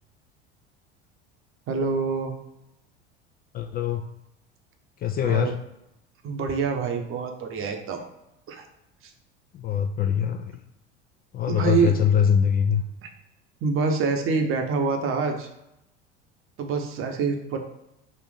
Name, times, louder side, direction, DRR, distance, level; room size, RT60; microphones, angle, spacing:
voice 1, 1.7-2.3 5.2-5.5 6.2-8.0 8.5-8.6 11.5-11.9 13.6-15.5 16.6-17.6, right 5 dB, 40° right, 4 dB, 0.9 m, -26 dB
voice 2, 3.5-4.1 5.0-5.6 9.5-10.6 11.3-12.8, left 8 dB, 30° left, 6 dB, 0.3 m, -23 dB
4.2 x 2.5 x 4.8 m, 0.86 s
hypercardioid pair, 75°, 33 cm